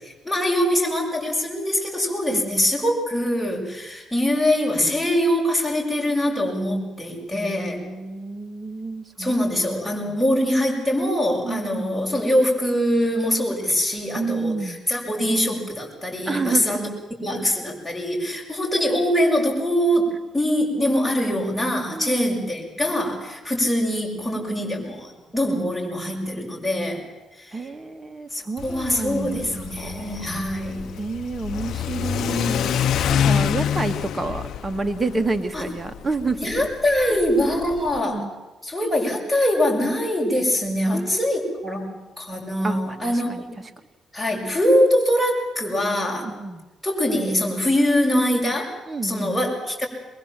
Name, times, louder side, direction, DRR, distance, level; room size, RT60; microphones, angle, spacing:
voice 1, 0.0-7.8 9.2-16.9 17.2-27.0 27.4-27.6 28.3-30.9 35.5-35.6 36.4-38.2 38.6-43.6 44.1-46.3 46.8-48.8 49.0-49.9, equal, ahead, -2 dB, 6.9 m, -23 dB
voice 2, 7.3-10.2 11.4-12.0 14.2-14.8 16.3-16.8 18.3-18.4 21.9-22.5 27.5-29.4 29.8-30.3 30.9-32.8 33.1-36.7 36.9-37.2 37.9-38.3 40.9-41.8 42.6-43.4 46.2-46.6 48.9-49.4, right 3 dB, 20° right, 7 dB, 1.8 m, -30 dB
Car / Accelerating revving vroom, 28.6-38.0, left 8 dB, 70° left, 0.8 m, -27 dB
23.0 x 22.5 x 7.6 m, 1.1 s
cardioid pair, 90°, 0 cm